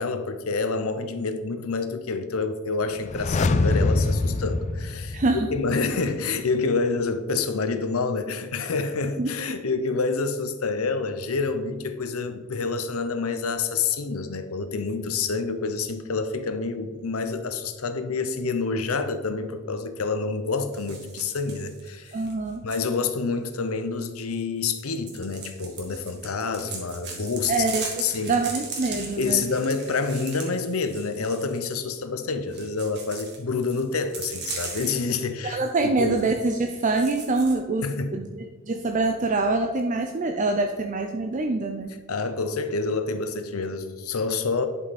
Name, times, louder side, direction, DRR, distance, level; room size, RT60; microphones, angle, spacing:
voice 1, 0.0-22.2 22.6-27.7 28.0-28.4 29.2-35.6 36.0-36.1 37.8-38.1 42.1-44.7, left 4 dB, 85° left, 9 dB, 0.8 m, -28 dB
sound 1, 3.0-5.9 6.2-6.3, left 2 dB, 35° left, 0.4 m, -24 dB
voice 2, 5.1-5.5 9.2-9.3 22.1-22.6 27.5-29.4 35.4-41.9, right 3 dB, 35° right, 5 dB, 0.5 m, -25 dB
sound 2, 20.7-22.9 24.7-31.7 32.5-35.2 35.5-35.7 36.1-36.2 36.7-37.5, right 4 dB, 55° right, 1.9 m, -38 dB
11.0 x 5.5 x 4.2 m, 1.3 s
head